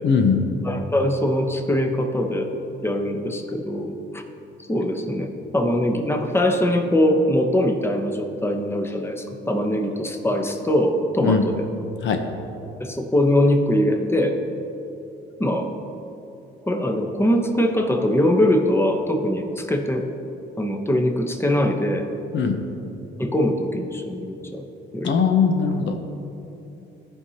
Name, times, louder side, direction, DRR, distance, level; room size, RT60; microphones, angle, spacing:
voice 1, 0.0-0.4 11.2-11.4 12.0-12.2 22.3-22.6 25.0-26.0, left 5 dB, 70° left, 6 dB, 0.9 m, -20 dB
voice 2, 0.6-2.5 2.8-4.2 4.7-5.3 5.5-11.6 12.8-14.4 15.4-15.7 16.7-20.0 20.6-22.1 23.2-24.7 24.9-25.1, left 1 dB, 10° left, 4 dB, 0.9 m, -22 dB
15.0 x 5.6 x 2.9 m, 2.9 s
cardioid pair, 90°, 20 cm